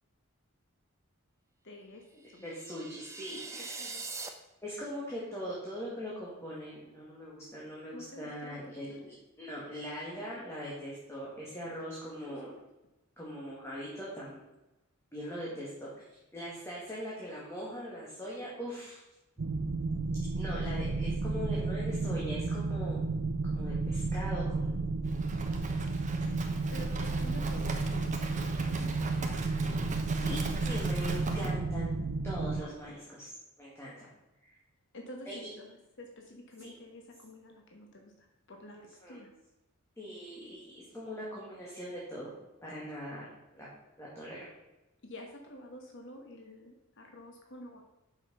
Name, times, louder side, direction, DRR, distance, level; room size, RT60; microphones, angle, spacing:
voice 1, 1.6-2.4 3.5-4.1 7.9-8.6 8.9-9.1 12.2-12.5 15.5-15.6 26.7-29.5 32.6-32.9 34.0-34.1 34.9-39.3 45.0-47.8, left 1 dB, 60° left, 2 dB, 1.3 m, -49 dB
sound 1, 2.3-4.3, right 4 dB, 15° right, 0.8 m, -42 dB
voice 2, 2.4-3.9 4.6-12.5 13.2-14.4 15.1-16.0 16.3-19.0 20.3-23.0 23.5-24.9 30.2-32.0 32.2-33.3 33.6-34.1 34.5-34.6 35.3-35.5 36.6-36.7 38.7-39.2 40.0-42.3 42.6-43.3 43.5-43.7 44.0-44.5, equal, 10° left, -6 dB, 2.1 m, -41 dB
sound 2, 19.4-32.6, right 3 dB, 65° right, 0.5 m, -32 dB
Livestock farm animals working animals, 25.0-31.5, right 2 dB, 35° right, 1.1 m, -40 dB
8.3 x 6.3 x 5.5 m, 0.99 s
head